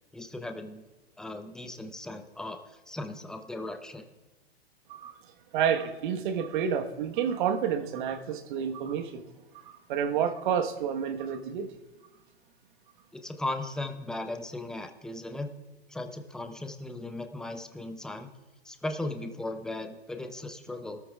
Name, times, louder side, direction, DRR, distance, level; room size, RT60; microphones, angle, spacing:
voice 1, 0.1-0.8 1.2-4.0 13.1-15.5 15.9-18.3 18.6-21.0, left 2 dB, ahead, 6 dB, 0.7 m, -37 dB
voice 2, 5.5-9.2 9.6-11.8, right 8 dB, 50° right, 6 dB, 1.4 m, -29 dB
25.0 x 13.5 x 2.4 m, 1.2 s
hypercardioid pair, 115°, 32 cm